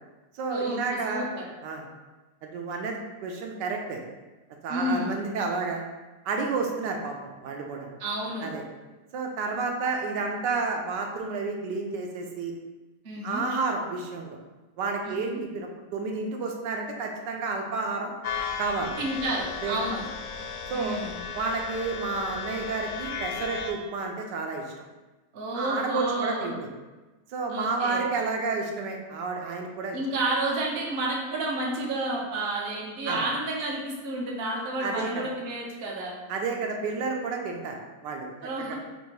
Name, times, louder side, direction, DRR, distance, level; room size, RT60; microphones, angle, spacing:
voice 1, 0.3-1.3 1.6-1.8 2.4-4.0 4.6-5.8 6.2-7.9 8.4-8.6 9.1-12.5 13.2-14.4 14.8-18.1 18.6-19.0 19.6-19.8 20.7-21.0 21.3-24.6 25.5-26.5 27.3-30.0 33.1-33.2 34.8-35.2 36.3-37.8 38.0-38.3 38.7-38.8, right 4 dB, 80° right, 1 dB, 1.2 m, -30 dB
voice 2, 1.1-1.4 4.7-5.1 8.0-8.5 13.0-13.4 15.0-15.4 19.0-20.0 20.7-21.2 25.3-26.5 27.5-28.0 29.9-36.1 38.4-38.7, right 2 dB, 50° right, -3 dB, 0.8 m, -30 dB
sound 1, 18.2-23.7, left 6 dB, 70° left, 1.0 m, -35 dB
3.4 x 2.7 x 4.5 m, 1.2 s
omnidirectional pair, 1.9 m